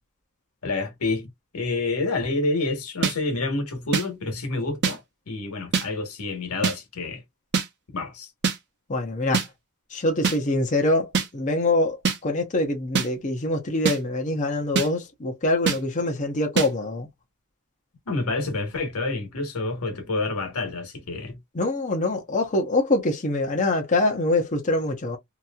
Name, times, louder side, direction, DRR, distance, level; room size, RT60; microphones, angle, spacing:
voice 1, 0.6-1.3 1.5-7.2 7.9-8.3 18.1-21.4, left 3 dB, 90° left, 1.2 m, -28 dB
sound 1, 3.0-3.1 3.9-4.0 4.8-4.9 5.7-5.9 6.6-6.8 7.5-7.7 8.4-8.6 9.3-9.5 10.2-10.4 11.1-11.3 12.0-12.2 12.9-13.1 13.8-14.0 14.7-14.9 15.7-15.8 16.6-16.7, right 5 dB, 55° right, 0.8 m, -22 dB
voice 2, 8.9-9.4 9.9-12.0 12.2-17.1 21.5-25.2, left 2 dB, 35° left, 0.7 m, -24 dB
2.9 x 2.6 x 2.3 m
head